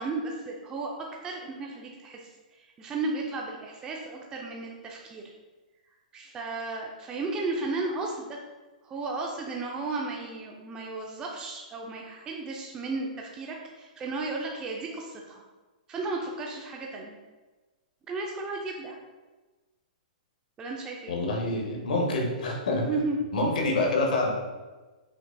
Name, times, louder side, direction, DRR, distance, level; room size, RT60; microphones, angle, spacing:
voice 1, 0.0-5.2 6.1-8.4 8.8-15.4 15.9-17.2 18.1-19.0 20.6-21.1 22.9-23.2, right 3 dB, 15° right, -1 dB, 0.5 m, -34 dB
voice 2, 21.1-22.8 23.3-24.3, left 2 dB, 75° left, 0 dB, 1.3 m, -26 dB
5.9 x 3.8 x 2.2 m, 1.2 s
hypercardioid pair, 145°, 5 cm